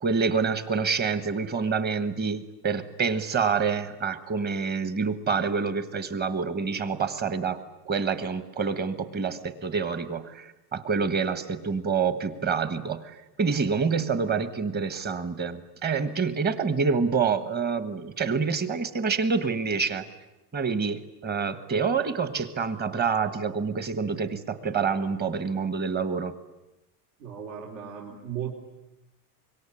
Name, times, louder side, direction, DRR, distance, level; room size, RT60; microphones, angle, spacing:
voice 1, 0.0-20.0 20.5-26.3, right 5 dB, 20° right, 13 dB, 1.3 m, -27 dB
voice 2, 27.2-28.5, right 9 dB, 70° right, 0 dB, 3.8 m, -36 dB
25.5 x 23.5 x 9.9 m, 0.94 s
cardioid pair, 165°, 47 cm